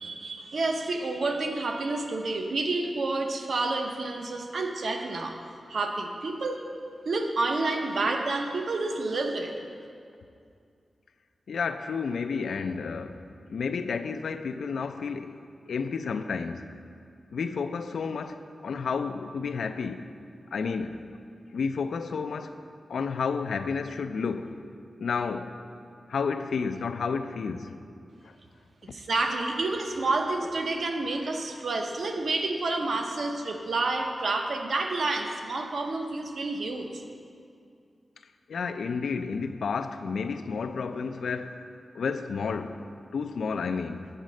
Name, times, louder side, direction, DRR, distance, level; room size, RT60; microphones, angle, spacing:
voice 1, 0.0-5.4 5.7-6.7 7.1-9.5 28.9-37.0, right 3 dB, 60° right, 0.6 m, -29 dB
voice 2, 11.5-13.2 13.5-15.4 15.7-16.7 17.3-20.1 20.5-21.1 21.5-22.6 22.9-24.7 25.0-25.6 26.1-27.8 28.2-28.3 38.5-41.7 41.9-44.1, left 5 dB, 85° left, 0.3 m, -31 dB
7.9 x 4.1 x 6.3 m
wide cardioid pair, 165°, 0 cm